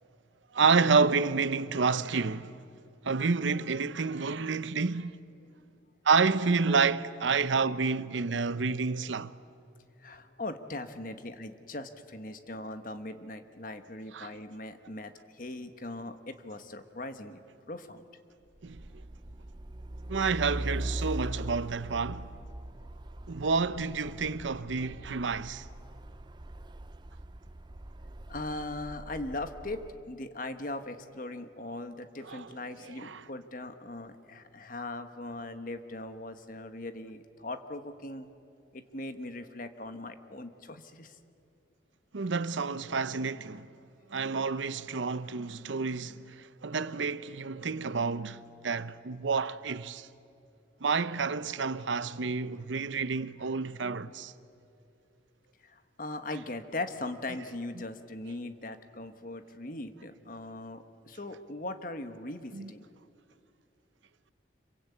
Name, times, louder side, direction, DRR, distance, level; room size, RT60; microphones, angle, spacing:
voice 1, 0.5-2.6 3.0-5.2 6.0-9.3 14.1-14.3 18.6-18.8 20.1-22.3 23.3-25.6 32.2-32.5 32.8-33.2 42.1-43.7 44.1-50.1 50.8-54.3 62.5-62.7, right 4 dB, 85° right, 0.8 m, -29 dB
voice 2, 10.0-17.4 17.7-18.0 28.3-38.3 38.7-41.2 55.6-62.9, left 2 dB, 45° left, 1.4 m, -40 dB
Truck, 18.6-30.0, right 1 dB, 25° right, 0.5 m, -41 dB
26.5 x 23.5 x 8.5 m
head